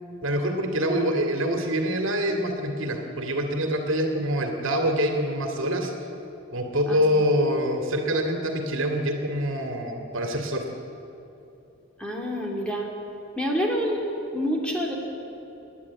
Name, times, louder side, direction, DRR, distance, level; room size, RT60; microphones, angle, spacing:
voice 1, 0.2-5.9 6.5-10.6, equal, 70° right, 4 dB, 2.3 m, -25 dB
voice 2, 6.9-7.2 12.0-12.9 13.4-14.1 14.3-14.9, equal, 5° left, -1 dB, 2.5 m, -27 dB
29.0 x 10.5 x 8.6 m, 2.9 s
head